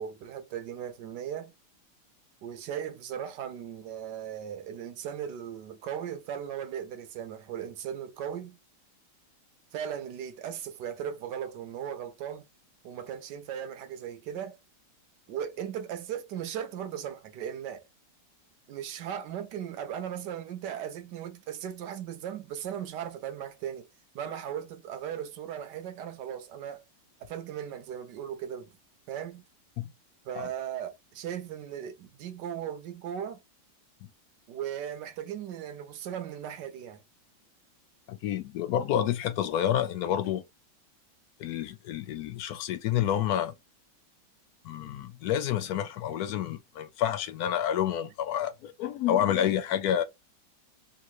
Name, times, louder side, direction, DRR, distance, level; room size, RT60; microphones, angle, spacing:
voice 1, 0.0-1.5 2.4-8.6 9.7-12.5 12.8-14.6 15.3-17.8 18.7-23.9 24.1-26.8 27.2-28.7 29.1-29.5 30.2-33.4 34.5-37.0, right 9 dB, 70° right, 1.2 m, -37 dB
voice 2, 38.1-40.4 41.4-43.5 44.6-50.0, left 10 dB, 75° left, 0.8 m, -29 dB
3.6 x 3.0 x 2.4 m
omnidirectional pair, 2.1 m